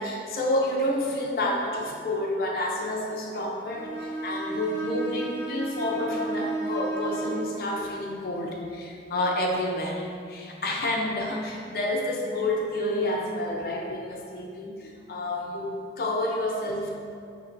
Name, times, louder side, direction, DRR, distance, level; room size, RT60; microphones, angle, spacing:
voice 1, 0.0-16.9, left 1 dB, 55° left, 0 dB, 0.4 m, -29 dB
Bowed string instrument, 3.7-7.5, right 3 dB, 75° right, 0.5 m, -32 dB
4.4 x 2.9 x 2.5 m, 2.5 s
head